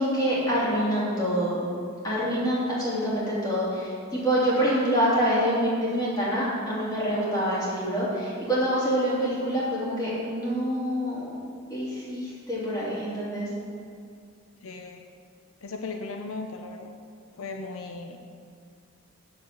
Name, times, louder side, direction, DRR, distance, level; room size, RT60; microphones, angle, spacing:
voice 1, 0.0-1.7 2.0-11.4 11.7-13.5, equal, 20° left, -8 dB, 3.0 m, -26 dB
voice 2, 14.6-15.0 15.6-16.9 17.4-18.2, left 3 dB, 75° left, 4 dB, 0.7 m, -37 dB
7.4 x 6.8 x 7.9 m, 2.3 s
head